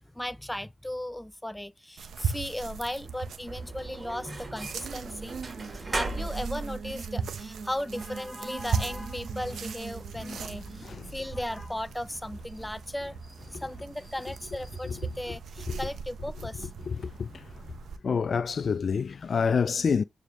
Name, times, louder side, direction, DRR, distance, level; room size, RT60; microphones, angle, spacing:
voice 1, 0.0-16.9, left 1 dB, 10° left, 0.6 m, -37 dB
sound 1, 2.0-18.0, right 6 dB, 75° right, 1.2 m, -39 dB
sound 2, 3.4-15.7, right 3 dB, 35° right, 3.3 m, -41 dB
sound 3, 4.8-11.2, right 5 dB, 55° right, 1.7 m, -43 dB
voice 2, 10.8-11.1 13.5-13.6 14.8-15.0 15.7-15.8 16.9-17.5 18.0-20.0, left 6 dB, 55° left, 0.3 m, -28 dB
9.2 x 4.9 x 3.2 m
cardioid pair, 60°, 0 cm